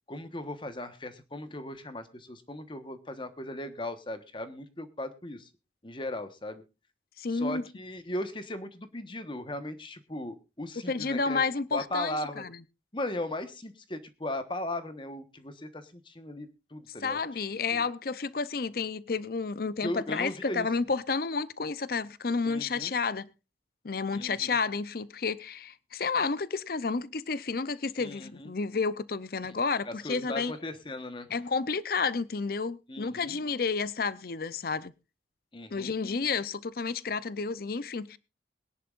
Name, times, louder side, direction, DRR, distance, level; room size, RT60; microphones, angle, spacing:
voice 1, 0.1-5.5 5.8-6.6 7.3-11.4 11.7-12.4 12.9-17.2 17.7-17.9 19.8-20.7 22.4-22.9 24.1-24.6 28.0-28.5 29.8-31.3 32.9-33.4 35.5-35.9, left 1 dB, 25° left, 1.2 m, -37 dB
voice 2, 7.2-7.6 10.9-12.5 17.0-23.3 23.8-30.5 31.3-34.9 35.7-38.2, left 4 dB, 55° left, 0.6 m, -31 dB
22.0 x 10.5 x 2.5 m
head